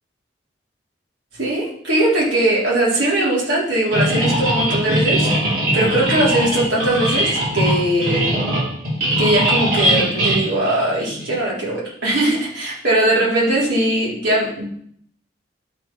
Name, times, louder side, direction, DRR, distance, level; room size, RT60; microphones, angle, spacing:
voice 1, 1.3-5.3 5.7-8.4 9.2-14.7, right 1 dB, 80° right, -6 dB, 4.2 m, -20 dB
sound 1, 3.9-11.3, right 1 dB, 50° right, 3.1 m, -20 dB
11.5 x 4.7 x 5.7 m, 0.65 s
head